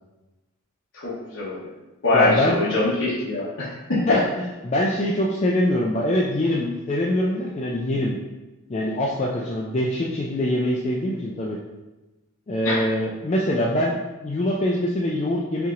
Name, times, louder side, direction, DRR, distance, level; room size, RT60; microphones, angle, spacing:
voice 1, 0.9-1.7 2.0-4.0 12.6-12.8, left 2 dB, 70° left, -8 dB, 0.9 m, -24 dB
voice 2, 2.1-2.6 4.1-8.2 8.7-11.6 12.5-15.7, left 1 dB, 30° left, -3 dB, 0.3 m, -24 dB
5.7 x 2.9 x 2.5 m, 1.1 s
head